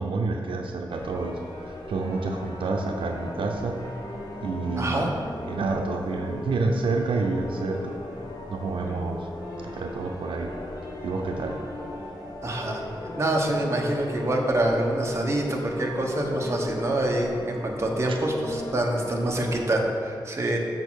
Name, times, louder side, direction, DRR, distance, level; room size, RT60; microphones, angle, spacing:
voice 1, 0.0-3.8 4.4-5.1 5.5-7.9 8.5-9.3 9.6-10.5 11.0-11.6 18.1-18.2, right 3 dB, 90° right, 3 dB, 0.6 m, -29 dB
sound 1, 0.9-19.6, left 1 dB, 45° left, 1.8 m, -38 dB
voice 2, 4.8-5.1 12.4-12.8 13.2-20.6, right 1 dB, 30° right, 0 dB, 1.2 m, -26 dB
6.7 x 5.8 x 6.4 m, 2.3 s
wide cardioid pair, 105°, 9 cm